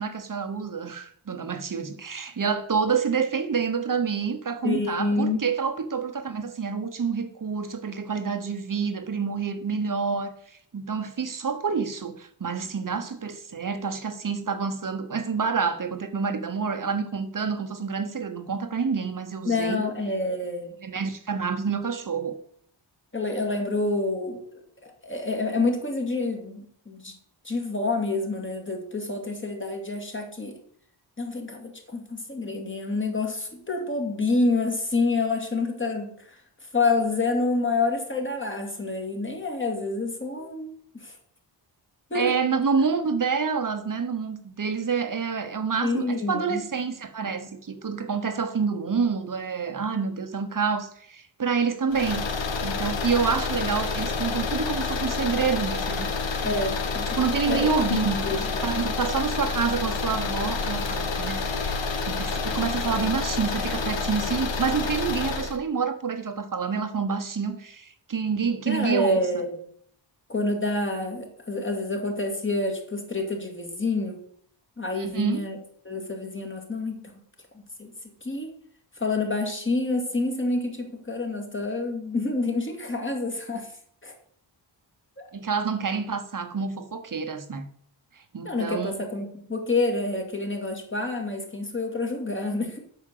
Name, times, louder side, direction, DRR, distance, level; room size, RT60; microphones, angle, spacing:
voice 1, 0.0-10.3 10.7-19.8 20.8-22.4 42.1-52.2 52.6-56.1 57.1-61.8 62.0-69.4 75.0-75.4 85.3-87.7 88.3-89.0, right 5 dB, 45° right, 1.2 m, -28 dB
voice 2, 4.6-5.5 19.4-20.7 23.1-27.1 27.4-30.6 31.2-36.1 36.7-41.1 42.1-42.3 45.8-46.6 56.4-57.2 57.4-58.5 68.7-69.5 70.3-74.2 74.8-75.6 75.9-77.1 77.8-77.9 78.2-78.5 79.0-83.7 84.0-84.1 85.2-85.3 88.4-92.8, left 3 dB, 25° left, 2.2 m, -28 dB
sound 1, 51.9-65.6, left 4 dB, 75° left, 1.3 m, -28 dB
9.0 x 6.2 x 6.7 m
wide cardioid pair, 120°, 45 cm